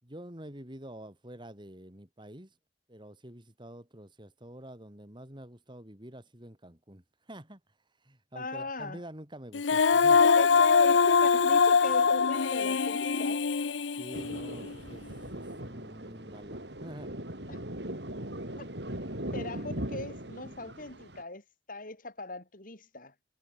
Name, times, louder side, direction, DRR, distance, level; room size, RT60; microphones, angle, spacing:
voice 1, 0.0-2.5 2.9-7.6 8.0-10.2 14.0-15.1 15.3-17.2, right 1 dB, 25° right, 4.5 m, -47 dB
voice 2, 8.3-9.0 10.2-13.4 17.5-17.7 18.5-18.7 19.3-23.1, left 2 dB, 50° left, 5.3 m, -38 dB
Female singing, 9.5-14.7, left 5 dB, 85° left, 0.7 m, -23 dB
Thunder, 14.1-21.2, right 1 dB, 65° right, 6.6 m, -39 dB
head